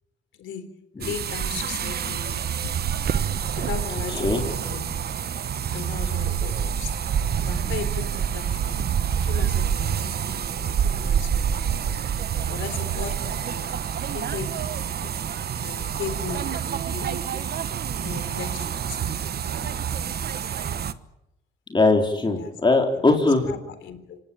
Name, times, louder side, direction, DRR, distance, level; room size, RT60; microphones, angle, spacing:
voice 1, 0.4-2.4 3.6-5.0 5.7-7.0 7.5-8.8 9.2-10.2 10.6-10.8 11.0-12.0 12.5-13.7 14.1-14.7 15.0-15.1 15.6-17.4 18.0-19.2 22.2-22.6 22.9-23.1 23.4-24.2, left 7 dB, 75° left, 11 dB, 3.9 m, -37 dB
sound 1, 1.0-20.9, right 8 dB, 55° right, 1.2 m, -27 dB
voice 2, 21.7-23.5, left 3 dB, 25° left, 2 dB, 4.1 m, -20 dB
26.5 x 17.5 x 9.1 m, 0.89 s
cardioid pair, 90°, 20 cm